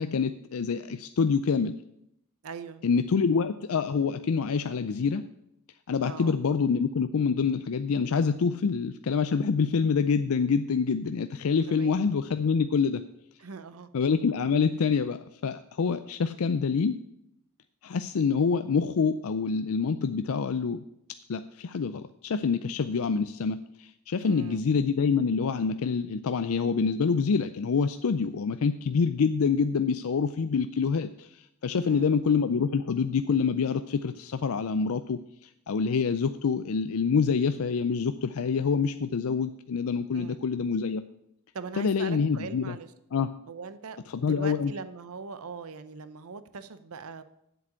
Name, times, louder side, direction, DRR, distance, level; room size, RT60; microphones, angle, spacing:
voice 1, 0.0-1.8 2.8-5.2 5.9-13.0 13.9-17.0 17.8-20.8 21.3-41.0 41.8-42.8 43.1-43.3 44.1-44.7, left 5 dB, 75° left, 10 dB, 0.4 m, -26 dB
voice 2, 2.4-2.8 6.0-6.4 11.7-12.0 13.4-13.9 24.2-24.6 31.7-32.1 40.1-40.4 41.5-42.9 43.5-47.2, right 5 dB, 75° right, 12 dB, 0.8 m, -41 dB
7.9 x 7.5 x 8.7 m, 0.80 s
head